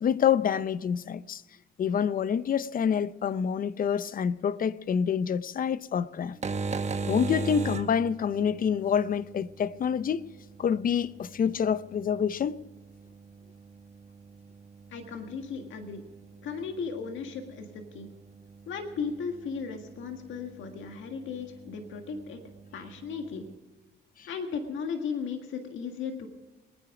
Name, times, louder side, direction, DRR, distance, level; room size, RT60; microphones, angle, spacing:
voice 1, 0.0-1.4 1.8-6.4 7.0-10.2 10.6-12.6 24.2-24.3, left 7 dB, 45° left, 0.6 m, -27 dB
sound 1, 6.2-23.6, right 4 dB, 35° right, 1.1 m, -41 dB
voice 2, 14.9-16.0 16.4-18.1 18.7-22.4 22.7-23.5 24.3-26.3, left 5 dB, 75° left, 1.8 m, -36 dB
22.0 x 10.0 x 5.0 m
cardioid pair, 90°, 20 cm